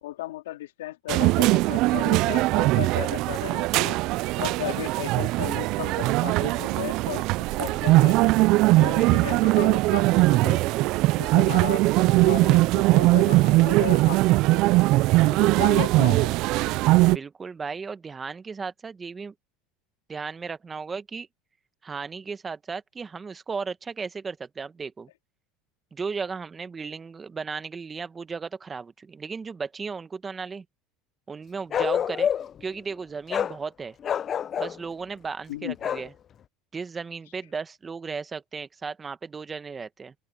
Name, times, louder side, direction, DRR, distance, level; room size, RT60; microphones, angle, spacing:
voice 1, 0.0-4.0 4.4-7.2 7.6-8.2 8.7-10.6 11.2-11.8 12.1-14.6 15.2-16.3 35.5-35.8, left 16 dB, 90° left, 4.0 m, -35 dB
sound 1, 1.1-17.2, right 20 dB, 60° right, 0.3 m, -21 dB
voice 2, 17.1-19.3 20.1-21.3 21.8-25.1 25.9-30.6 31.3-32.3 32.6-34.0 34.6-36.1 36.7-40.1, right 5 dB, 20° right, 1.3 m, -35 dB
Bark, 31.7-32.6 33.3-33.6 34.0-34.8 35.8-36.1, left 8 dB, 35° left, 0.6 m, -27 dB
open air
supercardioid pair, 105°, 0 cm